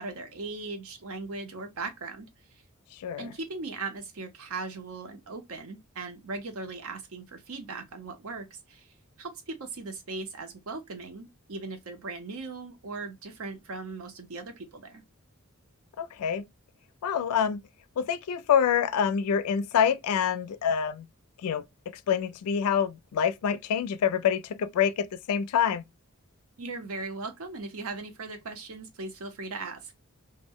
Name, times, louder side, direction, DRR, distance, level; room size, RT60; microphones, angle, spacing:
voice 1, 0.0-2.3 3.2-15.0 26.6-29.9, right 3 dB, 70° right, 0.7 m, -38 dB
voice 2, 3.0-3.3 16.0-16.4 17.0-17.6 18.0-21.1 21.4-21.6 22.1-25.8, left 8 dB, 85° left, 0.3 m, -26 dB
2.1 x 2.1 x 3.5 m
head